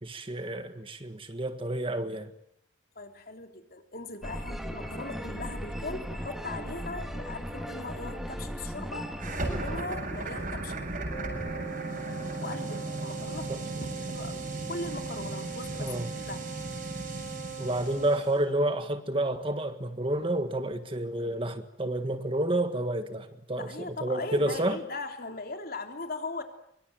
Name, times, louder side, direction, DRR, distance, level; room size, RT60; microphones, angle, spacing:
voice 1, 0.0-2.3 13.5-13.6 15.8-16.1 17.6-24.8, right 1 dB, 30° right, 1.7 m, -30 dB
voice 2, 2.9-9.1 9.4-10.8 12.4-16.5 23.6-26.4, left 3 dB, 50° left, 3.5 m, -39 dB
sound 1, 4.2-9.8, equal, ahead, 2.4 m, -37 dB
sound 2, 9.2-18.3, right 2 dB, 45° right, 7.2 m, -36 dB
Wind instrument woodwind instrument, 11.1-18.4, right 6 dB, 30° left, 3.9 m, -41 dB
25.5 x 24.0 x 9.3 m
head